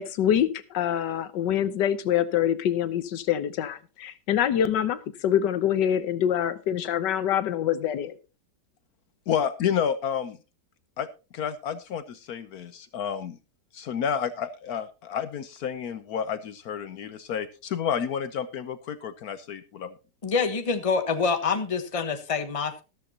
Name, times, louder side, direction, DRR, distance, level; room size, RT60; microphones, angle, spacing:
voice 1, 0.0-8.1, left 10 dB, 85° left, 14 dB, 1.5 m, -25 dB
voice 2, 9.3-10.4 11.0-11.1 11.3-13.4 13.7-19.9, left 8 dB, 65° left, 13 dB, 1.2 m, -30 dB
voice 3, 20.2-22.8, left 5 dB, 25° left, 9 dB, 1.0 m, -26 dB
13.5 x 13.0 x 2.8 m, 0.29 s
omnidirectional pair, 1.8 m